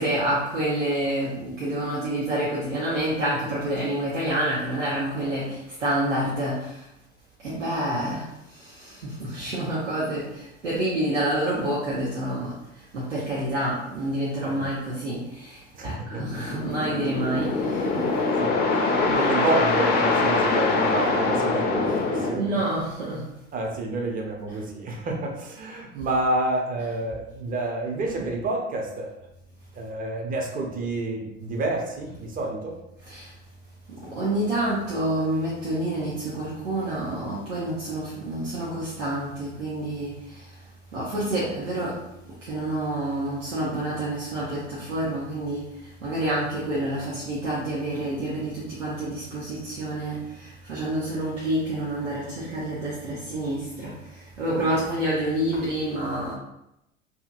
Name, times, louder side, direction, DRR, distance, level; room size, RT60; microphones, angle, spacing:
voice 1, 0.0-6.9 7.4-18.1 21.9-22.0 22.3-23.3 33.1-33.3 33.9-40.6 40.9-42.0 42.4-56.3, right 1 dB, 80° right, -8 dB, 0.8 m, -28 dB
voice 2, 15.7-16.2 18.0-22.6 23.5-29.1 29.7-32.8, right 2 dB, 25° right, 1 dB, 0.6 m, -29 dB
sound 1, 16.1-22.3, left 3 dB, 25° left, 0.5 m, -23 dB
2.7 x 2.7 x 2.4 m, 0.85 s
figure-of-eight pair, 70°, 37 cm